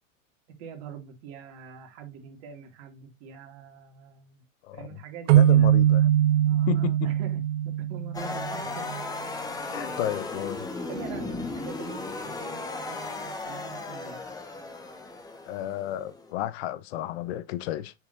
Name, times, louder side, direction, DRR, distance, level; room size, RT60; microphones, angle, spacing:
voice 1, 0.5-4.4 4.7-5.8 6.3-9.0 9.7-10.1 10.9-14.4, right 6 dB, 50° right, 2.7 m, -44 dB
voice 2, 4.6-5.0 5.3-6.1 6.7-7.1 9.6-10.7 15.4-17.9, left 13 dB, 55° left, 1.0 m, -32 dB
sound 1, 5.3-8.8, right 11 dB, 70° right, 0.7 m, -21 dB
sound 2, 8.1-16.3, left 3 dB, 10° left, 1.4 m, -36 dB
7.1 x 5.9 x 2.7 m
hypercardioid pair, 120°, 39 cm